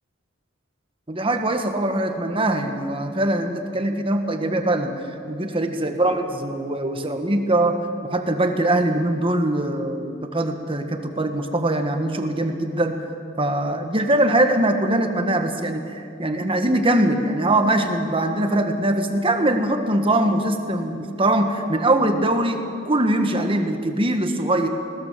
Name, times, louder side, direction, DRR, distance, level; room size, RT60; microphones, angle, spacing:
voice 1, 1.1-4.9 5.3-7.8 8.1-13.0 13.4-24.7, right 1 dB, 25° right, 5 dB, 1.5 m, -22 dB
20.0 x 19.5 x 7.4 m, 2.5 s
head